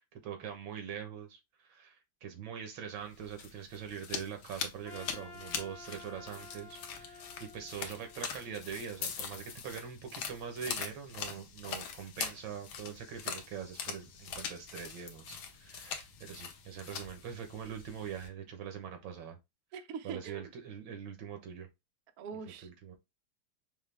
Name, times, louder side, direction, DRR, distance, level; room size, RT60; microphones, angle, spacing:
voice 1, 0.1-19.4 20.0-21.7 22.6-22.9, right 8 dB, 85° right, 1.7 m, -43 dB
sound 1, 3.1-18.3, left 7 dB, 85° left, 1.6 m, -43 dB
Trumpet, 4.8-9.1, left 4 dB, 55° left, 1.0 m, -52 dB
voice 2, 19.7-20.5 22.2-22.7, right 6 dB, 70° right, 0.9 m, -43 dB
5.5 x 2.1 x 3.3 m
omnidirectional pair, 2.1 m